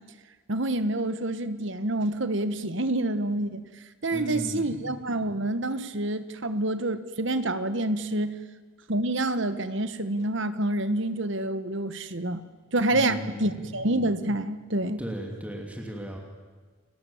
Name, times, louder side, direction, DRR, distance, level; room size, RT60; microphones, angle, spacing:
voice 1, 0.5-3.6 4.0-8.4 8.9-12.4 12.7-15.0, right 1 dB, 55° right, 12 dB, 1.3 m, -27 dB
voice 2, 4.1-4.9 12.9-13.8 15.0-16.2, equal, 5° right, 0 dB, 2.9 m, -36 dB
29.5 x 19.0 x 7.3 m, 1.4 s
head